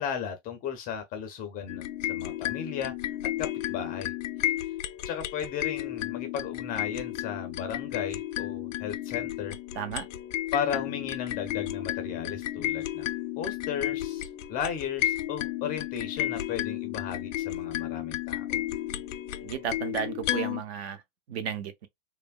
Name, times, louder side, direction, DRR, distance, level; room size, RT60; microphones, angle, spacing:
voice 1, 0.0-2.9 3.4-4.1 4.4-4.5 5.0-9.6 10.5-18.6, left 7 dB, 25° left, 0.4 m, -35 dB
sound 1, 1.7-20.6, left 13 dB, 80° left, 0.5 m, -33 dB
voice 2, 19.4-21.0 21.3-21.9, right 8 dB, 60° right, 0.7 m, -33 dB
3.2 x 2.1 x 2.2 m
hypercardioid pair, 130°, 37 cm